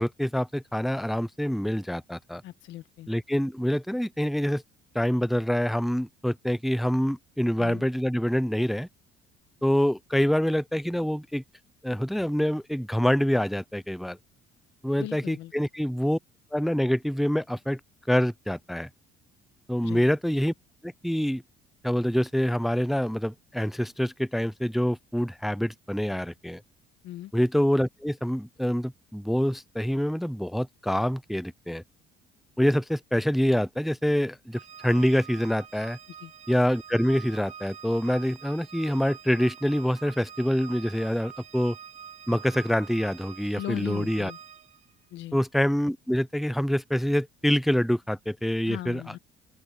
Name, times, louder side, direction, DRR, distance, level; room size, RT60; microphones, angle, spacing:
voice 1, 0.0-2.4 3.1-4.6 4.9-8.9 9.6-11.4 11.8-14.2 14.8-16.2 16.5-17.8 18.1-18.9 19.7-20.5 20.8-21.4 21.8-26.6 27.3-31.8 32.6-36.0 36.5-41.8 42.3-44.3 45.3-49.0, equal, ahead, 0.4 m, -26 dB
voice 2, 2.4-3.1 7.6-7.8 15.0-15.5 19.8-20.1 27.0-27.3 36.2-36.3 43.5-44.4 45.1-45.4 48.6-49.2, left 14 dB, 80° left, 1.6 m, -38 dB
Organ, 34.5-44.9, right 8 dB, 35° right, 1.0 m, -46 dB
open air
cardioid pair, 150°, 19 cm